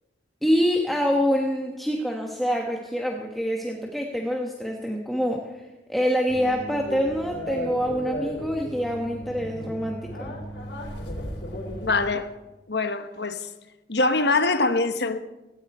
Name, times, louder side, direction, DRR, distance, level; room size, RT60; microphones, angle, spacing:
voice 1, 0.4-10.3, equal, ahead, 1.3 m, -26 dB
sound 1, 6.3-12.1, equal, 80° left, 4.0 m, -35 dB
voice 2, 11.8-12.3 12.7-13.5 13.9-15.2, left 3 dB, 60° left, 1.2 m, -23 dB
17.5 x 17.0 x 4.3 m
head